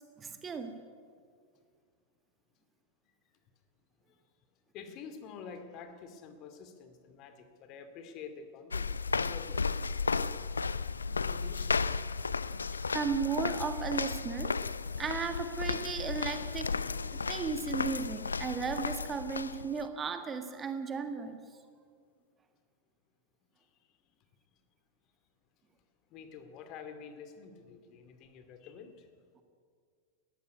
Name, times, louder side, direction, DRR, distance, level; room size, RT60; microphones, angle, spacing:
voice 1, 0.2-0.7 12.9-14.7 15.0-16.7 17.1-21.4, right 5 dB, 20° right, 7 dB, 1.7 m, -35 dB
voice 2, 4.7-10.3 11.1-12.0 26.1-29.1, left 6 dB, 40° left, 8 dB, 2.3 m, -48 dB
sound 1, 8.7-19.9, left 4 dB, 75° left, 0.5 m, -34 dB
19.5 x 15.0 x 9.7 m, 2.1 s
figure-of-eight pair, 90°, 0 cm